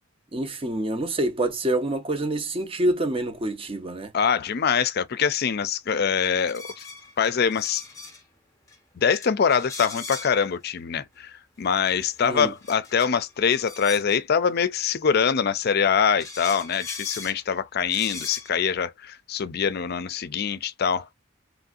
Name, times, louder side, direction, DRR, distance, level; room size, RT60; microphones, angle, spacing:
voice 1, 0.3-4.1 12.2-12.5, right 1 dB, 25° right, 0.6 m, -26 dB
voice 2, 4.1-6.8 7.2-7.8 9.0-11.3 11.6-21.1, left 7 dB, 50° left, 0.4 m, -24 dB
sound 1, 6.4-8.2 8.7-8.8 9.1-10.4 11.8-14.2 15.7-15.8 16.2-17.4 17.8-18.6, left 4 dB, 15° left, 0.7 m, -39 dB
3.1 x 2.6 x 2.4 m
head